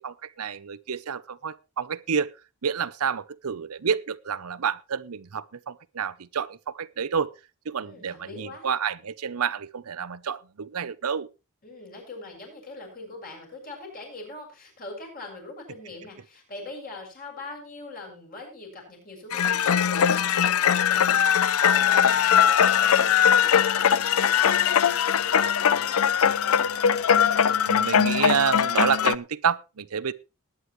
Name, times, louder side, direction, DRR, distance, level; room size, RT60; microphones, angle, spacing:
voice 1, 0.0-2.3 2.6-7.3 7.7-11.3 27.7-30.1, right 7 dB, 85° right, 0.7 m, -29 dB
voice 2, 7.8-8.7 11.6-27.3, left 2 dB, 40° left, 7.0 m, -42 dB
sound 1, 19.3-29.2, left 8 dB, 75° left, 0.5 m, -21 dB
20.0 x 9.6 x 3.1 m
head